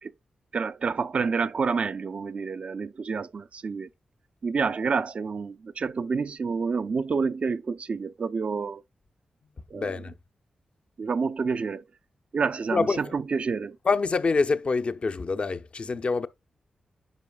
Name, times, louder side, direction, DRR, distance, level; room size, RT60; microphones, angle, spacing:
voice 1, 0.5-3.9 4.4-8.8 9.7-10.0 11.0-11.8 12.3-13.8, right 5 dB, 60° right, 0.4 m, -28 dB
voice 2, 9.7-10.2 12.7-13.1 13.8-16.3, left 4 dB, 50° left, 0.6 m, -26 dB
9.5 x 5.2 x 2.3 m
supercardioid pair, 40°, 2 cm